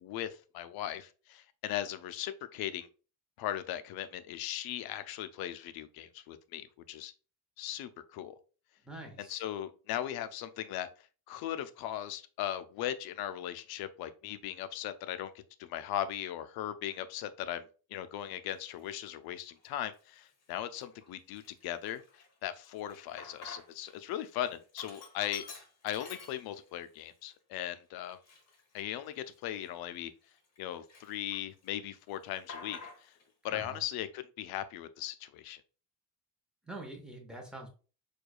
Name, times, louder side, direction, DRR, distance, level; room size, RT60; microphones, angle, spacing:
voice 1, 0.0-2.9 3.4-7.1 7.6-8.4 9.2-15.3 15.6-17.6 17.9-22.0 22.4-25.5 25.8-28.2 28.7-30.1 30.6-33.1 33.4-35.6, left 12 dB, 70° left, 12 dB, 0.5 m, -38 dB
voice 2, 8.8-9.4 33.5-33.8 36.6-37.7, right 2 dB, ahead, 1 dB, 0.7 m, -45 dB
Sink (filling or washing), 18.7-18.8 19.5-20.0 20.4-20.5 20.8-23.9 24.2-26.8 27.2-27.3 28.0-30.6 30.9-31.7 31.9-33.3, left 4 dB, 40° left, 1.0 m, -49 dB
4.5 x 2.3 x 2.3 m, 0.36 s
cardioid pair, 135°, 39 cm